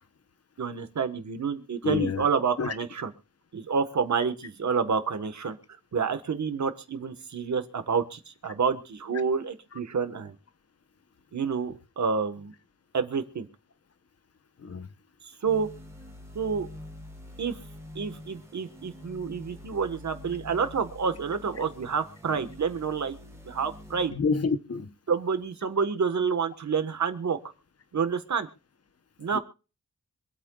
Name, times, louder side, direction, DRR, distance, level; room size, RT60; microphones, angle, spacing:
voice 1, 0.6-3.1 3.5-5.6 5.9-10.3 11.3-12.5 12.9-13.5 15.2-15.7 16.3-16.7 17.4-17.6 17.9-23.1 23.4-24.1 25.1-27.4 27.9-28.5 29.2-29.4, right 6 dB, 70° right, 1.4 m, -28 dB
voice 2, 1.8-2.3 2.6-2.7 14.6-14.9 24.1-24.9 29.3-29.4, left 4 dB, 55° left, 1.0 m, -28 dB
sound 1, 15.5-24.1, left 1 dB, 10° right, 4.0 m, -46 dB
25.5 x 8.7 x 2.4 m
wide cardioid pair, 155°, 29 cm